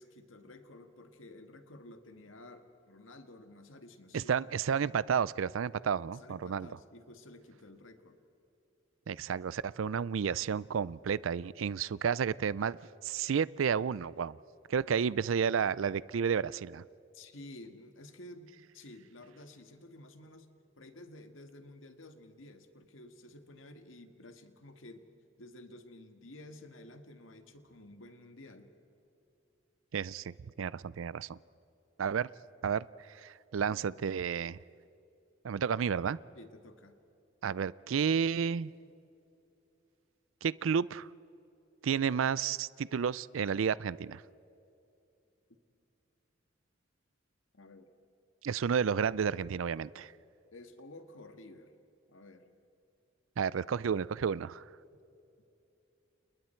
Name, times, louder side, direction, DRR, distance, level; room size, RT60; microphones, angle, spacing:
voice 1, 0.0-4.5 6.1-8.2 17.1-20.5 20.8-25.1 25.4-28.7 36.4-37.0 47.5-47.9 50.5-51.7 52.1-52.5, left 1 dB, 85° left, 7 dB, 1.8 m, -52 dB
voice 2, 4.1-6.7 9.1-12.8 13.0-14.4 14.7-16.8 29.9-31.4 32.0-32.3 32.6-34.6 35.4-36.2 37.4-38.7 40.4-41.1 41.8-44.2 48.4-50.1 53.4-54.6, right 7 dB, 85° right, 20 dB, 0.4 m, -31 dB
30.0 x 30.0 x 4.5 m, 2.8 s
head